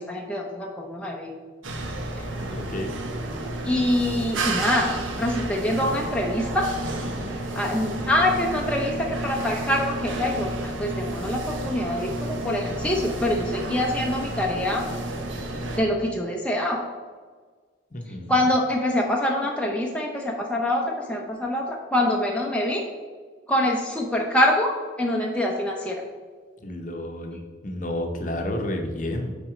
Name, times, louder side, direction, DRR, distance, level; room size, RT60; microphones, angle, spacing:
voice 1, 0.0-1.4 3.6-6.7 7.5-14.8 15.8-16.8 18.3-22.9 23.5-26.0, left 1 dB, 5° left, -1 dB, 0.5 m, -25 dB
sound 1, 1.6-15.8, right 2 dB, 90° right, 0.9 m, -31 dB
voice 2, 2.5-2.9 17.9-18.3 26.6-29.3, left 1 dB, 40° left, 4 dB, 0.7 m, -31 dB
5.9 x 4.2 x 4.8 m, 1.5 s
head